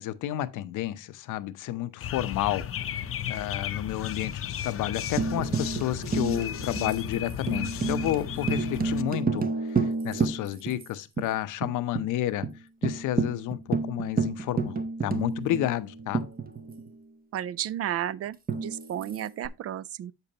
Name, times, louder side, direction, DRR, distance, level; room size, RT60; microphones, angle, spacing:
voice 1, 0.0-12.5 12.8-16.3, left 13 dB, 85° left, 0.7 m, -31 dB
sound 1, 2.0-9.0, left 9 dB, 45° left, 0.6 m, -34 dB
Tambourine, 5.2-10.9 11.2-11.3 11.6-12.1 12.4-12.5 12.8-17.0 18.5-19.5, right 4 dB, 30° right, 0.8 m, -30 dB
voice 2, 17.3-20.1, right 11 dB, 55° right, 0.4 m, -33 dB
8.0 x 6.8 x 2.8 m
cardioid pair, 90°, 30 cm